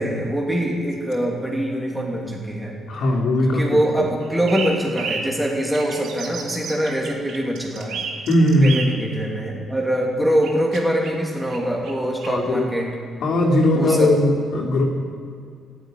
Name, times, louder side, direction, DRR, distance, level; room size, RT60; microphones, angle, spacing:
voice 1, 0.0-2.8 3.5-8.0 8.6-12.9 13.7-14.1, right 1 dB, 5° right, -2 dB, 2.8 m, -23 dB
voice 2, 2.9-3.7 8.3-9.0 12.2-12.7 13.2-14.8, left 1 dB, 75° left, -3 dB, 3.0 m, -18 dB
sound 1, 4.2-5.3 5.7-8.9 10.4-11.1 11.5-11.6 11.8-11.9 12.2-12.3, right 5 dB, 80° right, 2.2 m, -31 dB
13.5 x 11.0 x 9.2 m, 2.3 s
cardioid pair, 90°, 0 cm